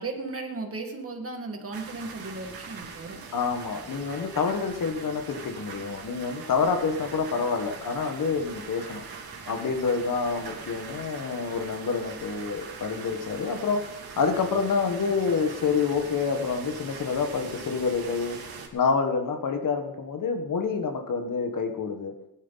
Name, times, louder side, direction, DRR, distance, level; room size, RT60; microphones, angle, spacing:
voice 1, 0.0-3.2, right 3 dB, 40° right, 3 dB, 2.1 m, -35 dB
sound 1, 1.7-18.7, right 5 dB, 85° right, 2.6 m, -42 dB
voice 2, 3.3-9.0 9.5-13.8 14.2-18.4 18.7-22.1, left 5 dB, 60° left, 5 dB, 1.6 m, -27 dB
20.0 x 11.0 x 4.1 m, 0.87 s
wide cardioid pair, 160°, 36 cm